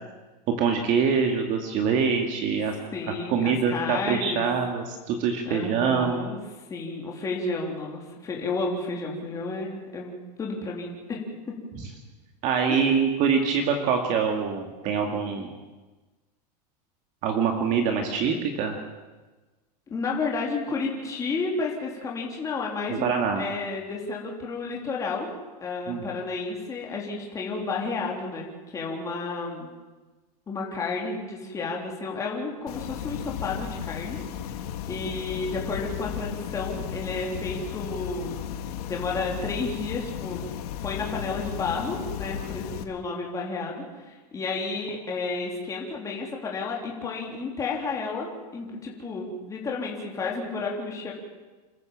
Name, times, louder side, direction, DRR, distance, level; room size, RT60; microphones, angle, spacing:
voice 1, 0.5-2.8 3.3-6.2 11.8-11.9 12.4-15.5 17.2-18.8 22.9-23.4 25.9-26.1, right 6 dB, 35° right, 3 dB, 2.2 m, -24 dB
voice 2, 2.9-4.4 5.5-6.4 6.7-11.2 12.7-13.0 19.9-25.3 25.6-28.5 28.7-29.7 30.5-34.5 34.9-38.4 38.8-40.4 40.8-51.1, left 3 dB, 15° left, -2 dB, 3.6 m, -31 dB
sound 1, 32.7-42.8, left 9 dB, 65° left, 1.9 m, -35 dB
28.0 x 14.0 x 7.5 m, 1.2 s
supercardioid pair, 160°, 21 cm